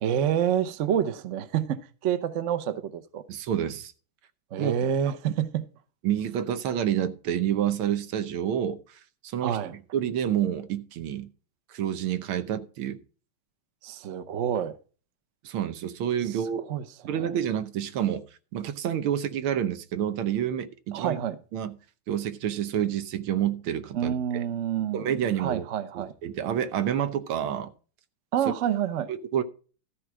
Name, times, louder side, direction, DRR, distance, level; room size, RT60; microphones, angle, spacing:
voice 1, 0.0-3.2 4.5-5.6 9.4-9.7 13.8-14.7 16.2-16.4 16.7-17.3 20.9-21.4 23.9-26.1 28.3-29.1, right 9 dB, 60° right, 0.8 m, -28 dB
voice 2, 3.3-3.9 4.6-4.7 6.0-8.8 9.2-9.6 9.9-11.3 11.7-13.0 15.4-16.7 17.1-18.2 18.5-21.2 21.5-21.7 22.1-24.4 24.9-25.7 26.0-27.7 29.1-29.4, right 10 dB, 90° right, 1.8 m, -28 dB
13.5 x 4.6 x 6.1 m
omnidirectional pair, 2.3 m